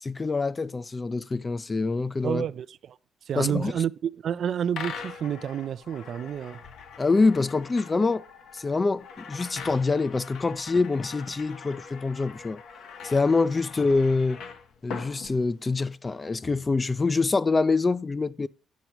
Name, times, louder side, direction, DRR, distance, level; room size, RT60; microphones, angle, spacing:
voice 1, 0.0-2.4 3.4-3.8 7.0-8.3 8.5-12.6 13.0-14.4 14.8-18.5, left 3 dB, 25° left, 0.4 m, -25 dB
voice 2, 2.2-3.0 3.3-6.6, right 9 dB, 60° right, 0.4 m, -29 dB
sound 1, 4.7-16.0, left 6 dB, 75° left, 1.1 m, -42 dB
9.3 x 6.0 x 4.3 m
cardioid pair, 90°, 0 cm